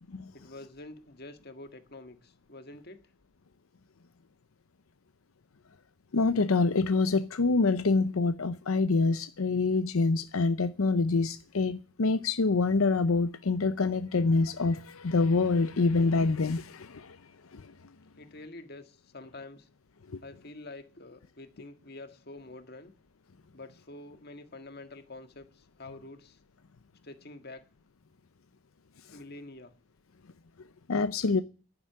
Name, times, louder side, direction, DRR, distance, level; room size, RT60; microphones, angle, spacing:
voice 1, 0.3-3.1 18.2-19.7 20.2-22.9 23.5-26.4 27.0-27.7 29.1-29.7, left 2 dB, 50° left, 1.7 m, -47 dB
voice 2, 6.1-17.2 17.5-17.6 30.9-31.4, left 3 dB, 85° left, 0.7 m, -26 dB
11.0 x 9.8 x 8.5 m
head